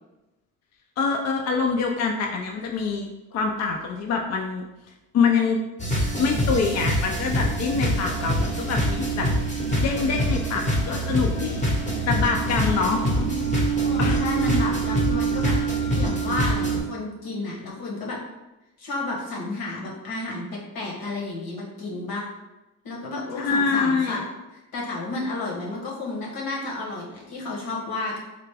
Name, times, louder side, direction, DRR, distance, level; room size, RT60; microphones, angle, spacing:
voice 1, 1.0-4.6 5.1-5.6 6.2-9.3 9.8-11.7 12.1-13.0 14.0-14.2 23.4-24.2, left 5 dB, 50° left, 2 dB, 0.4 m, -25 dB
sound 1, 5.8-16.8, right 1 dB, 20° left, 0.8 m, -24 dB
voice 2, 12.6-13.3 13.8-15.6 15.9-18.2 18.8-22.2 22.8-24.2 24.5-28.2, left 2 dB, 85° left, -3 dB, 1.1 m, -31 dB
3.3 x 2.5 x 3.3 m, 0.99 s
cardioid pair, 105°, 35 cm